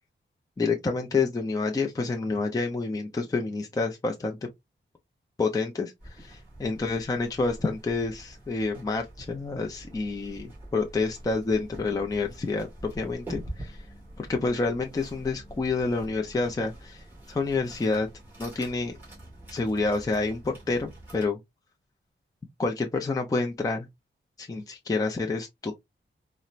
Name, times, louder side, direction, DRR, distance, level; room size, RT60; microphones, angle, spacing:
voice 1, 0.6-4.5 5.4-13.9 14.2-18.1 18.4-19.0 19.5-21.4 22.6-23.9 24.4-25.7, left 3 dB, 15° left, 0.4 m, -28 dB
sound 1, 6.0-21.3, right 1 dB, 10° right, 2.0 m, -45 dB
4.1 x 2.1 x 2.4 m
wide cardioid pair, 140°, 21 cm